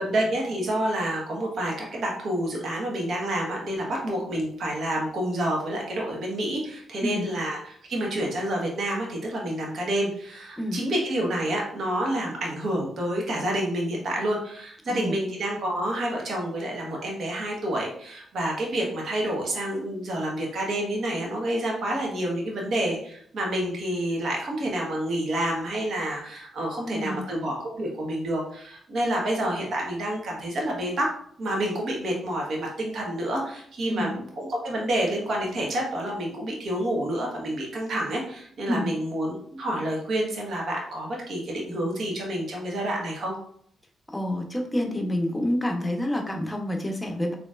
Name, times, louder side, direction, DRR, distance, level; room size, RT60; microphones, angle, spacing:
voice 1, 0.0-31.1 31.4-43.3, right 1 dB, 65° right, -1 dB, 1.3 m, -28 dB
voice 2, 26.8-27.2 33.9-34.1 38.7-38.9 44.1-47.3, left 1 dB, 15° left, 3 dB, 0.9 m, -28 dB
4.1 x 3.2 x 2.5 m, 0.63 s
supercardioid pair, 60°, 0 cm